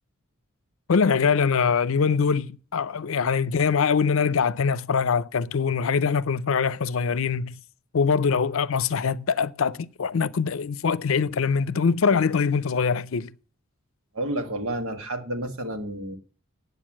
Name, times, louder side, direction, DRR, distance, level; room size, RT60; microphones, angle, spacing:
voice 1, 0.9-7.6 7.9-13.3, left 5 dB, 75° left, 0.5 m, -23 dB
voice 2, 14.1-16.2, right 1 dB, 90° right, 1.8 m, -30 dB
9.0 x 8.0 x 7.5 m
head